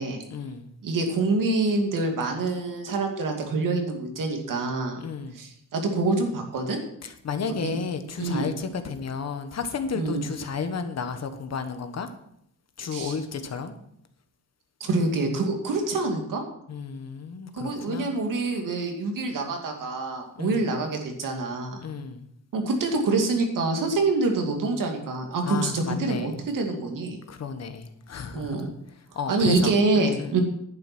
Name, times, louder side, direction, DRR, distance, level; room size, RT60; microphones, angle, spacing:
voice 1, 0.3-0.7 5.0-5.3 7.0-12.1 12.8-13.7 16.7-18.1 20.4-20.7 21.8-22.3 25.4-26.3 27.3-28.6 29.1-30.4, left 5 dB, 55° left, 1.3 m, -32 dB
voice 2, 0.8-5.0 5.3-6.8 7.5-7.8 8.2-8.5 9.9-10.2 12.9-13.1 14.8-16.4 17.5-21.8 22.5-27.2 28.3-28.7 29.3-30.4, right 3 dB, 80° right, 2.5 m, -26 dB
10.5 x 9.1 x 6.1 m
wide cardioid pair, 150°, 32 cm